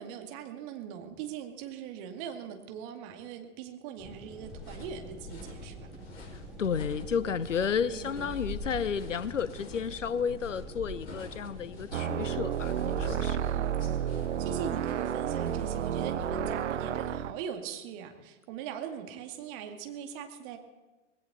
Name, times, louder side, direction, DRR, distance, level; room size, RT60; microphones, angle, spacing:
voice 1, 0.0-5.9 7.9-8.3 13.4-13.8 14.4-20.6, right 8 dB, 40° right, 5 dB, 2.2 m, -41 dB
sound 1, 4.0-12.3, equal, ahead, 3.4 m, -47 dB
sound 2, 4.4-16.4, left 1 dB, 55° left, 5.5 m, -45 dB
voice 2, 6.6-13.4, left 7 dB, 80° left, 18 dB, 0.8 m, -32 dB
sound 3, 11.9-17.3, right 9 dB, 70° right, 0.6 m, -31 dB
20.0 x 16.5 x 4.1 m, 1.2 s
figure-of-eight pair, 100°, 38 cm